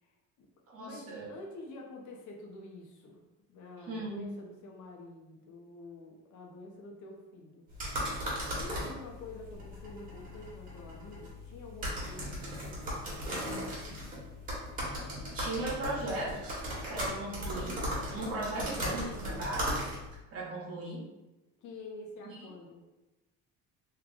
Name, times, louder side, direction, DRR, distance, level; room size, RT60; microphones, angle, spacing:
voice 1, 0.0-0.5 0.8-7.7 8.5-13.5 21.6-22.8, left 2 dB, 60° left, 0 dB, 0.9 m, -48 dB
voice 2, 0.7-1.3 3.9-4.2 15.3-16.6 16.9-17.8 18.1-19.8 20.3-21.0 22.3-22.4, right 2 dB, 45° right, -4 dB, 1.1 m, -37 dB
sound 1, 7.7-20.2, equal, 25° right, 1.3 m, -37 dB
3.3 x 2.3 x 3.8 m, 1.0 s
cardioid pair, 150°, 33 cm